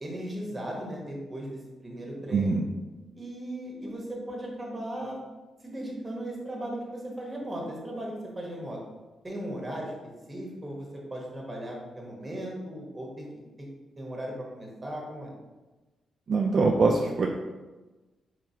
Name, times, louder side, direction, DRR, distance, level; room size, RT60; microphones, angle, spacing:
voice 1, 0.0-2.6 3.1-5.2 5.6-8.8 9.2-9.9 10.3-13.3 13.6-13.7 14.0-15.3, right 1 dB, 20° right, -2 dB, 1.1 m, -37 dB
voice 2, 2.3-2.6 16.3-17.3, right 3 dB, 45° right, 1 dB, 0.3 m, -23 dB
4.8 x 3.2 x 2.8 m, 1.2 s
cardioid pair, 125°, 0 cm